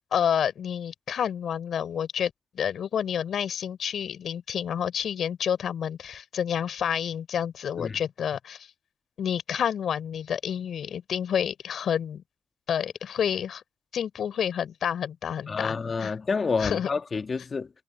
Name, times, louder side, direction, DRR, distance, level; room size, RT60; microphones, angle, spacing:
voice 1, 0.1-8.7 9.2-12.2 12.7-13.6 13.9-16.1 16.6-16.9, left 8 dB, 70° left, 4.0 m, -29 dB
voice 2, 15.5-17.7, left 4 dB, 45° left, 1.7 m, -29 dB
hypercardioid pair, 45°, 0 cm